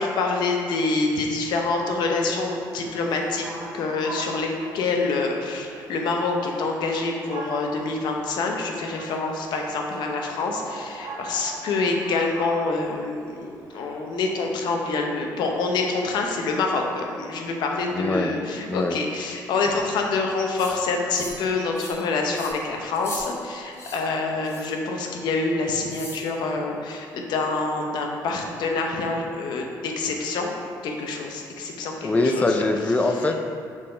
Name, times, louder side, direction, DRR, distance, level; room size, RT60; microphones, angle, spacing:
voice 1, 0.0-3.5 3.7-30.5 30.8-32.7, left 3 dB, 75° left, 2 dB, 0.8 m, -26 dB
sound 1, 1.5-16.3, right 2 dB, 50° right, 1.3 m, -41 dB
voice 2, 17.9-18.3 18.7-19.0 32.0-33.4, left 2 dB, 20° left, 5 dB, 0.5 m, -23 dB
sound 2, 20.5-20.7 21.1-21.4 21.7-22.0 22.3-22.5 22.9-23.2 23.7-24.0 24.4-24.7 25.9-26.2, left 2 dB, 35° left, 1.5 m, -39 dB
6.3 x 3.8 x 4.3 m, 2.3 s
cardioid pair, 100°, 8 cm